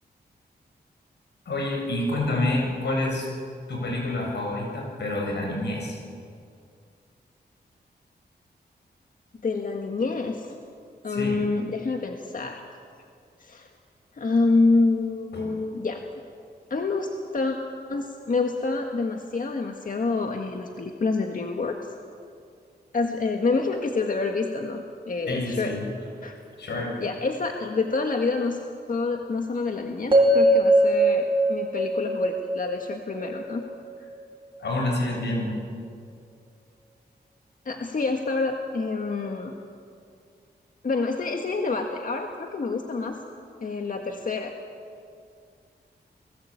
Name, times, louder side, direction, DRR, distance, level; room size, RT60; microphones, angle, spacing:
voice 1, 1.5-3.3 3.7-6.0 11.1-11.4 15.3-15.5 25.3-25.8 26.6-27.0 34.6-35.6, left 1 dB, 90° left, 0 dB, 7.5 m, -28 dB
voice 2, 9.4-10.6 11.0-12.6 13.4-13.7 14.2-16.0 16.7-17.6 17.9-21.9 22.9-25.7 26.2-26.4 27.0-28.6 28.9-33.6 37.7-39.5 40.8-43.2 43.6-44.5, left 3 dB, 50° left, 3 dB, 1.8 m, -27 dB
sound 1, 30.1-34.2, right 1 dB, 30° right, 4.3 m, -21 dB
29.5 x 20.5 x 8.8 m, 2.3 s
wide cardioid pair, 130°, 17 cm